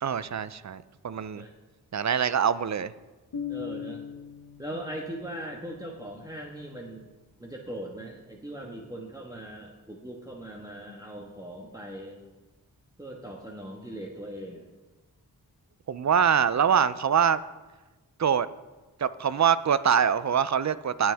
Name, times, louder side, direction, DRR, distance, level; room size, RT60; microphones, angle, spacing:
voice 1, 0.0-1.4 1.9-2.9 15.9-17.4 18.2-18.5 19.0-21.1, right 8 dB, 45° right, 15 dB, 0.6 m, -24 dB
sound 1, 3.3-7.1, left 8 dB, 75° left, 1.3 m, -41 dB
voice 2, 3.5-4.0 4.6-7.1 7.4-12.2 13.0-14.7, right 1 dB, 10° right, -2 dB, 1.5 m, -40 dB
18.5 x 6.3 x 3.5 m, 1.2 s
cardioid pair, 45°, 38 cm